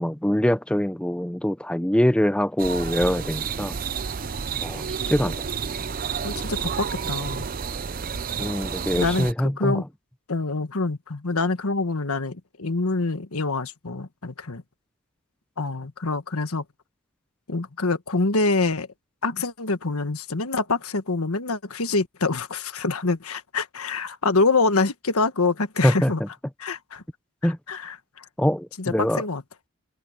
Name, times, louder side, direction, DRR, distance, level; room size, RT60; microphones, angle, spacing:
voice 1, 0.0-3.8 4.6-5.3 8.4-9.8 25.8-26.1 27.4-27.6 28.4-29.2, equal, 5° left, 0.5 m, -23 dB
sound 1, 2.6-9.3, right 6 dB, 40° right, 0.6 m, -30 dB
voice 2, 6.2-7.5 8.9-9.8 10.3-14.6 15.6-16.6 17.5-18.9 19.2-26.2 26.6-27.0 27.4-28.2 28.8-29.4, left 3 dB, 80° left, 1.4 m, -26 dB
open air
head